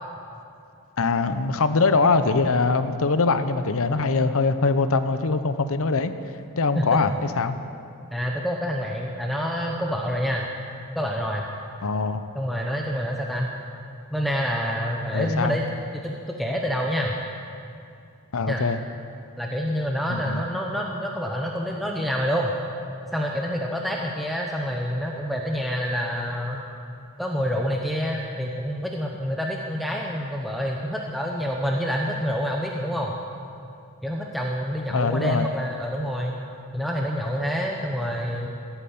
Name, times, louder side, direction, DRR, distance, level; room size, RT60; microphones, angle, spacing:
voice 1, 1.0-6.1 6.6-7.6 11.8-12.2 15.1-15.6 18.3-18.8 20.1-20.4 34.9-35.5, left 4 dB, 65° left, 11 dB, 0.8 m, -22 dB
voice 2, 8.1-10.5 10.9-11.4 12.3-13.5 14.1-15.7 15.9-17.1 18.5-18.6 19.4-22.5 23.1-26.6 27.2-33.2 34.0-36.4 36.7-38.5, equal, ahead, -1 dB, 0.9 m, -27 dB
16.0 x 9.1 x 8.6 m, 2.6 s
head